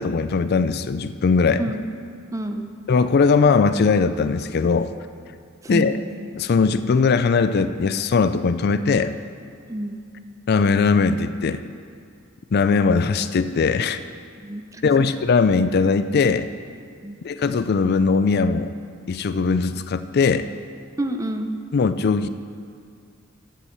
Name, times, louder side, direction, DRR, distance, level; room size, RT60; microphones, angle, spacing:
voice 1, 0.0-1.6 2.9-4.9 5.7-6.0 6.4-9.1 10.5-11.6 12.5-14.0 14.8-16.5 17.2-18.7 19.1-20.5 21.7-22.3, left 4 dB, 50° left, 12 dB, 0.4 m, -20 dB
voice 2, 2.3-2.7 5.6-5.9 9.7-10.0 14.4-15.1 17.0-17.2 21.0-21.6, right 1 dB, 15° right, 6 dB, 0.7 m, -28 dB
11.0 x 8.2 x 7.2 m, 2.2 s
head